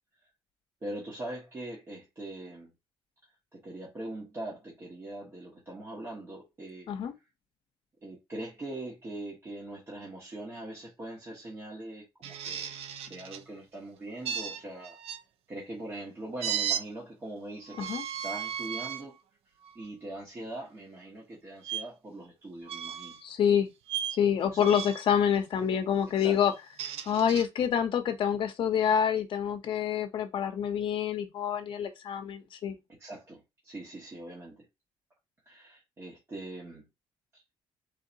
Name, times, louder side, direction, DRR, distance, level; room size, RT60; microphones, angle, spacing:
voice 1, 0.8-2.7 3.5-6.9 8.0-12.8 13.1-15.0 15.5-17.9 18.2-19.2 19.7-23.2 24.5-24.7 26.1-26.4 33.0-34.7 35.4-36.9 37.3-37.4, right 1 dB, 25° right, 1.3 m, -42 dB
sound 1, 12.2-13.4 14.2-15.2 16.4-16.8 17.7-19.0 19.6-19.8 21.6-21.8 22.7-23.2 23.9-24.2 24.6-25.1 26.5-27.5, right 9 dB, 70° right, 0.5 m, -35 dB
voice 2, 23.2-23.7 24.1-26.5 27.1-32.8, left 8 dB, 50° left, 0.8 m, -27 dB
4.2 x 3.7 x 2.8 m
cardioid pair, 175°, 11 cm